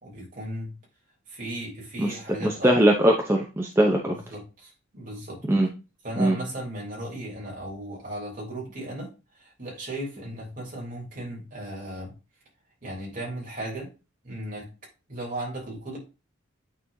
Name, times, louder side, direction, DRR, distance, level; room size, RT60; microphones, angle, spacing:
voice 1, 0.0-0.7 1.3-2.7 4.3-5.4 6.0-12.1 12.8-13.9 14.2-14.7 15.1-16.0, right 1 dB, 40° right, -3 dB, 3.2 m, -36 dB
voice 2, 2.4-4.2 5.5-5.7 6.2-6.4, right 1 dB, 10° right, 1 dB, 0.6 m, -21 dB
8.7 x 4.3 x 2.7 m, 0.30 s
head